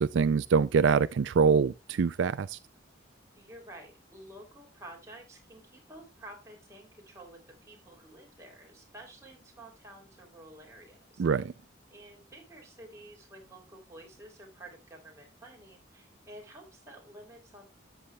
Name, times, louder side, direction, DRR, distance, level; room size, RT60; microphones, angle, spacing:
voice 1, 0.0-2.6 11.2-11.5, right 5 dB, 70° right, 0.4 m, -24 dB
voice 2, 3.3-11.5 11.9-17.6, right 1 dB, 15° right, 3.0 m, -51 dB
13.0 x 8.4 x 2.2 m
head